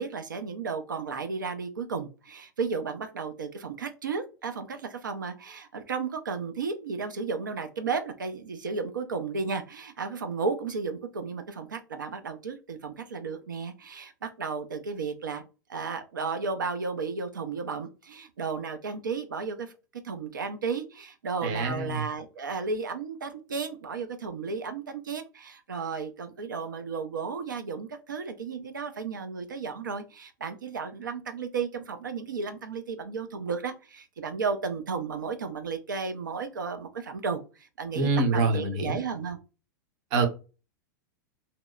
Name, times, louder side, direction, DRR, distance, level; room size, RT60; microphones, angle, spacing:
voice 1, 0.0-15.4 15.7-19.7 20.0-39.4, right 5 dB, 90° right, 0.5 m, -33 dB
voice 2, 21.4-22.0 38.0-39.0 40.1-40.3, right 3 dB, 50° right, 0.7 m, -25 dB
2.8 x 2.0 x 2.3 m
hypercardioid pair, 100°, 10 cm